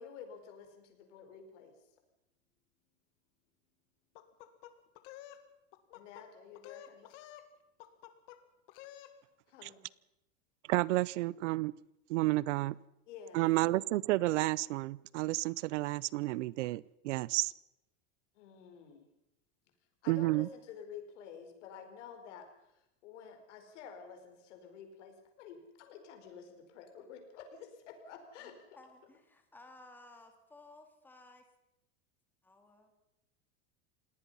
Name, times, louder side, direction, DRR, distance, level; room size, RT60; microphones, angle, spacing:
voice 1, 0.0-1.7 5.9-7.1 9.5-9.8 13.1-13.4 18.4-19.1 20.0-22.5 23.0-28.6, left 7 dB, 65° left, 6 dB, 4.9 m, -50 dB
sound 1, 4.1-5.4 5.7-6.2 6.5-7.5 7.8-8.4 8.7-9.1, left 13 dB, 45° left, 1.9 m, -51 dB
voice 2, 10.7-11.7 12.1-12.8 13.3-17.5 20.1-20.5, right 19 dB, 65° right, 24 dB, 0.7 m, -31 dB
voice 3, 28.8-31.5 32.4-32.9, left 2 dB, 5° left, 5 dB, 2.1 m, -57 dB
27.0 x 18.5 x 5.6 m, 0.88 s
supercardioid pair, 175°, 39 cm